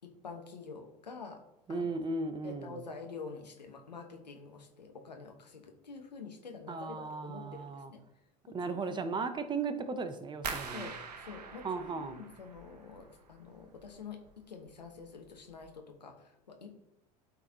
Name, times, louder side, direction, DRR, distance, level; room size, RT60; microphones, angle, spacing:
voice 1, 0.0-1.4 1.7-1.9 2.4-8.9 10.7-16.7, left 5 dB, 85° left, 3 dB, 1.0 m, -47 dB
voice 2, 1.7-2.8 6.7-7.9 8.5-10.9 11.6-12.2, right 4 dB, 20° right, 10 dB, 0.8 m, -36 dB
sound 1, 10.4-13.3 13.6-14.3 14.7-15.1 15.5-15.6, right 5 dB, 80° right, 0.7 m, -43 dB
12.0 x 4.1 x 2.8 m, 0.86 s
figure-of-eight pair, 75°, 21 cm